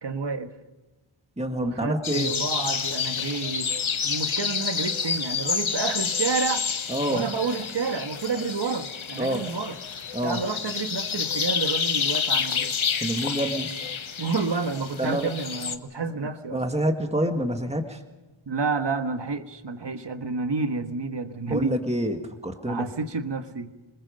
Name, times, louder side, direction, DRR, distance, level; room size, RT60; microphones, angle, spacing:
voice 1, 0.0-0.5 1.5-3.7 4.0-6.7 7.1-9.8 10.2-12.8 14.2-16.6 18.5-21.8 22.6-23.7, right 4 dB, 60° right, 8 dB, 1.4 m, -29 dB
voice 2, 1.4-2.3 6.9-7.3 9.2-9.4 10.1-10.4 13.0-13.7 15.0-15.3 16.5-18.0 21.5-22.2 22.4-22.9, right 1 dB, 15° right, 4 dB, 1.8 m, -27 dB
sound 1, 2.0-15.8, left 6 dB, 85° left, 1.1 m, -29 dB
26.5 x 20.5 x 5.3 m, 1.2 s
wide cardioid pair, 55°, 47 cm